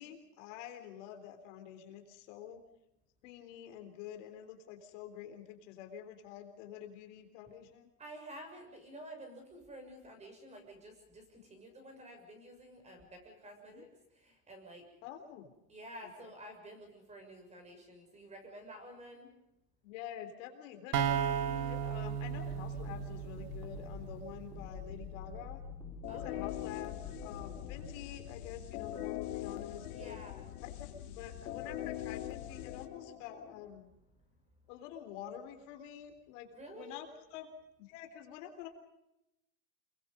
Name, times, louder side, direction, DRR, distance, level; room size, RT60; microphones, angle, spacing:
voice 1, 0.0-2.6 3.2-7.9 13.7-13.8 15.0-15.5 16.0-16.3 19.8-25.6 26.1-30.2 30.6-33.9 34.7-37.5 37.8-38.7, left 10 dB, 55° left, 6 dB, 3.8 m, -48 dB
voice 2, 8.0-13.9 14.1-14.8 15.7-19.3 26.1-26.5 29.9-30.5 36.5-37.0, right 1 dB, 15° right, 5 dB, 6.6 m, -50 dB
sound 1, 20.9-24.6, right 8 dB, 80° right, 2.1 m, -35 dB
sound 2, 22.3-27.9, left 5 dB, 10° left, 2.6 m, -47 dB
sound 3, 26.0-33.7, left 13 dB, 70° left, 3.2 m, -42 dB
28.5 x 23.0 x 5.3 m, 0.88 s
supercardioid pair, 155°, 45 cm